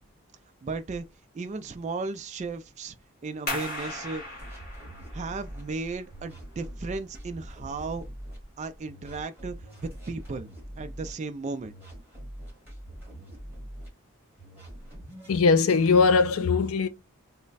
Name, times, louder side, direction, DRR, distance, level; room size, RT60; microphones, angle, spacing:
voice 1, 0.6-1.0 1.3-2.9 3.2-4.2 5.1-8.0 8.6-9.5 9.8-10.5 10.8-11.7, right 3 dB, 30° right, 0.3 m, -35 dB
sound 1, 3.5-8.8, left 1 dB, 40° left, 1.9 m, -39 dB
sound 2, 4.4-5.6 6.1-8.4 8.9-11.1 11.6-13.9 14.4-15.4, equal, 10° right, 1.3 m, -43 dB
voice 2, 15.3-16.9, left 4 dB, 65° left, 0.4 m, -20 dB
3.1 x 2.1 x 3.9 m
head